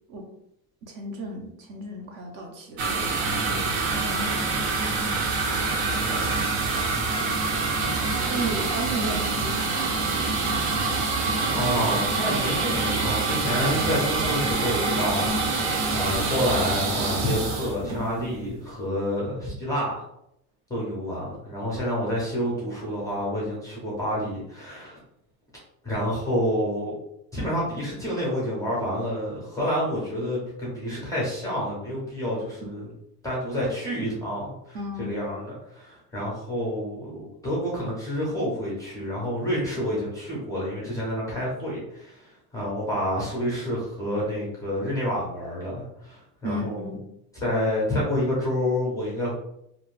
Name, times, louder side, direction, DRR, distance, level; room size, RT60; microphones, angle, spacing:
voice 1, 0.8-5.8 7.7-8.0 8.3-10.8 32.6-32.7 34.7-35.1 46.4-47.0, right 1 dB, 50° right, 2 dB, 0.5 m, -36 dB
sound 1, 2.8-18.5, right 3 dB, 75° right, 0.8 m, -26 dB
voice 2, 6.0-6.6 11.5-20.0 20.7-25.0 25.8-26.9 27.3-32.9 33.2-46.9 47.3-49.3, equal, 10° left, -5 dB, 0.4 m, -28 dB
2.5 x 2.1 x 3.0 m, 0.78 s
cardioid pair, 170°, 43 cm